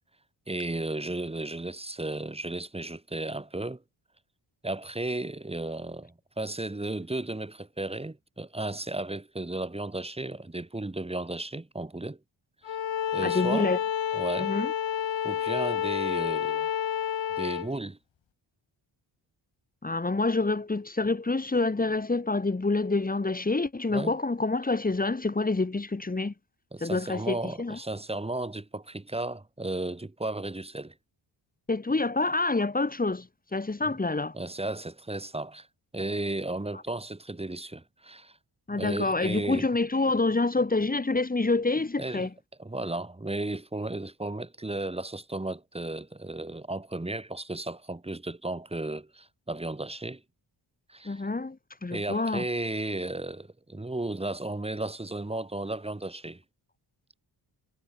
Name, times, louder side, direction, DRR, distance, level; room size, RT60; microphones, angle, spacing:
voice 1, 0.5-3.8 4.6-12.2 12.7-12.8 13.1-13.7 14.1-14.5 15.2-16.7 17.4-18.0 23.9-24.1 26.7-30.9 33.8-33.9 34.3-35.7 35.9-38.4 38.8-39.7 42.0-42.3 42.6-50.2 50.9-51.2 51.9-56.4, right 2 dB, 15° right, 6.8 m, -34 dB
Bowed string instrument, 12.6-17.7, left 9 dB, 85° left, 6.1 m, -29 dB
voice 2, 13.2-13.8 14.4-14.7 19.8-26.3 26.8-27.8 31.7-34.3 38.7-42.3 51.0-52.4, left 3 dB, 20° left, 4.8 m, -27 dB
wide cardioid pair, 165°, 45 cm